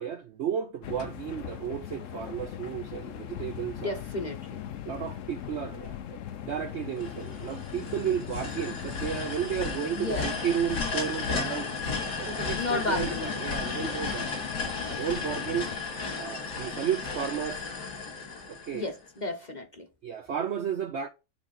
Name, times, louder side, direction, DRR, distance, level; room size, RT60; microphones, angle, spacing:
voice 1, 0.0-4.0 4.9-11.7 12.2-14.3 14.9-15.7 16.2-17.7 18.5-18.9 20.0-21.1, right 8 dB, 65° right, 0.7 m, -33 dB
sound 1, 0.8-15.8, left 10 dB, 60° left, 0.9 m, -40 dB
voice 2, 3.8-4.6 9.9-10.3 12.6-13.3 13.6-14.0 18.7-19.9, left 2 dB, 30° left, 1.0 m, -33 dB
sound 2, 7.0-19.1, left 4 dB, 85° left, 3.0 m, -34 dB
10.0 x 3.7 x 4.2 m
omnidirectional pair, 1.7 m